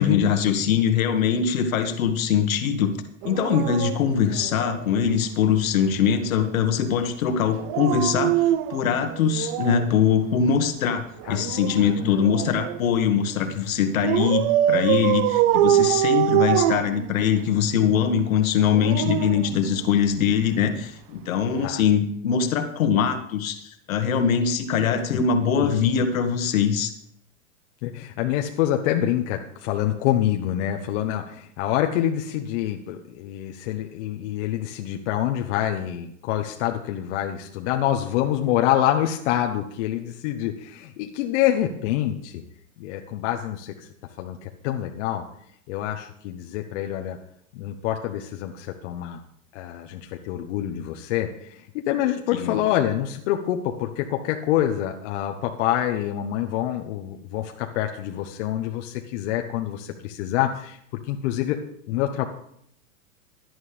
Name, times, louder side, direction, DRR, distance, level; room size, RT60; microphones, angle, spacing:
voice 1, 0.0-2.9 3.2-26.9 52.3-52.6, left 7 dB, 70° left, 8 dB, 1.8 m, -22 dB
Dog, 3.2-5.1 7.5-9.9 11.2-12.9 14.0-17.6 18.5-20.2 21.5-21.7, right 12 dB, 40° right, 0.5 m, -24 dB
voice 2, 11.8-12.1 21.6-21.8 25.1-25.2 25.6-25.7 27.8-42.4 42.8-43.9 44.2-45.2 45.7-47.2 47.5-49.2 49.5-60.8 61.1-61.6 61.9-62.3, left 12 dB, 55° left, 4 dB, 1.2 m, -26 dB
17.5 x 11.0 x 3.4 m, 0.70 s
hypercardioid pair, 100°, 42 cm